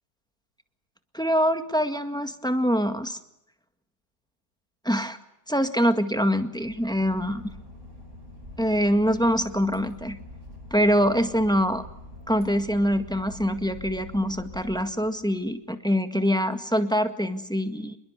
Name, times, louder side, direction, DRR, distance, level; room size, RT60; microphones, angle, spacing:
voice 1, 1.1-3.2 4.9-5.2 5.5-7.6 8.6-10.2 10.7-11.9 12.3-18.0, equal, 5° left, 7 dB, 1.8 m, -24 dB
Boat Water vehicle / Engine, 6.5-15.5, left 2 dB, 40° right, 5.5 m, -45 dB
27.5 x 21.5 x 8.2 m, 0.80 s
omnidirectional pair, 1.5 m